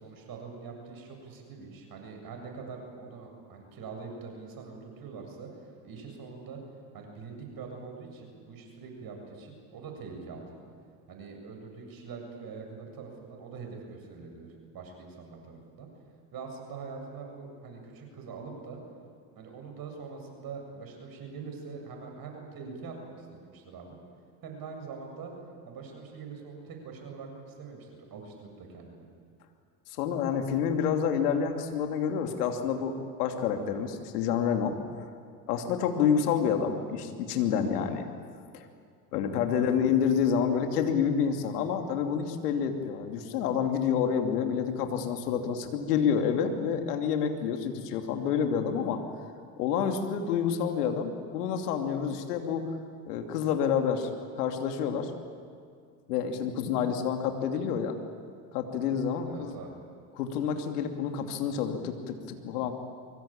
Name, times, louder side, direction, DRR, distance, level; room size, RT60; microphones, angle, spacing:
voice 1, 0.0-6.6 6.9-10.7 11.1-14.5 14.7-15.9 16.3-18.8 19.3-24.0 24.4-25.3 25.7-29.1 39.5-39.9 59.2-59.8, right 5 dB, 50° right, 3 dB, 7.4 m, -43 dB
voice 2, 30.0-34.8 35.5-38.1 38.5-38.6 39.1-49.0 49.6-52.7 53.1-54.1 54.4-55.1 56.1-58.0 58.5-59.5 60.1-62.7, left 7 dB, 80° left, 5 dB, 2.9 m, -28 dB
24.0 x 24.0 x 8.8 m, 2.2 s
hypercardioid pair, 75°, 46 cm